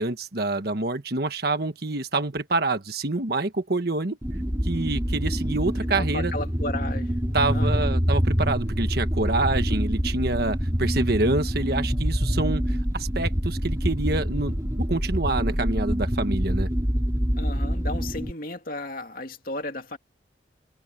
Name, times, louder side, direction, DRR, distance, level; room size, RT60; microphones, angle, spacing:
voice 1, 0.0-4.2 4.6-6.3 7.3-16.7, right 2 dB, 55° right, 1.4 m, -27 dB
sound 1, 4.2-18.3, equal, 20° right, 2.3 m, -26 dB
voice 2, 5.9-7.2 7.5-8.0 17.4-20.0, left 2 dB, 50° left, 2.6 m, -34 dB
head